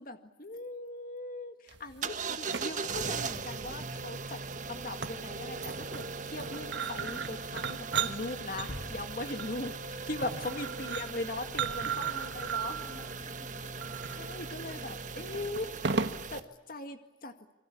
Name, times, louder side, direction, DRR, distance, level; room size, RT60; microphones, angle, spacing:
voice 1, 0.0-4.4 4.7-12.8 14.1-15.8 16.3-17.3, left 2 dB, 50° left, 7 dB, 2.0 m, -40 dB
sound 1, 1.7-16.4, right 6 dB, 65° right, 1.5 m, -37 dB
sound 2, 2.0-16.4, right 4 dB, 40° right, 1.3 m, -39 dB
sound 3, 8.7-11.4, left 1 dB, 75° left, 2.4 m, -48 dB
voice 2, 11.9-15.7, left 1 dB, 20° left, 5 dB, 6.5 m, -54 dB
29.0 x 23.5 x 8.6 m, 0.94 s
head